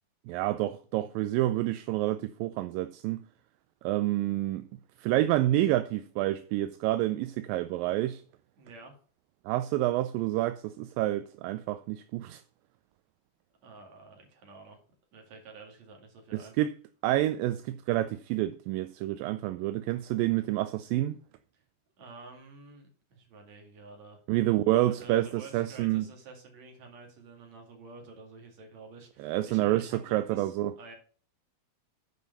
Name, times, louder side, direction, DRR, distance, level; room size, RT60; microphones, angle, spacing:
voice 1, 0.3-3.2 3.8-4.6 5.0-8.2 9.5-12.4 16.3-16.7 17.0-21.1 24.3-26.1 29.2-30.7, right 15 dB, 80° right, 2.1 m, -28 dB
voice 2, 8.6-8.9 13.6-14.8 15.1-16.5 21.5-21.6 22.0-24.2 24.9-31.0, right 3 dB, 50° right, 3.3 m, -49 dB
9.5 x 5.1 x 5.4 m
omnidirectional pair, 4.3 m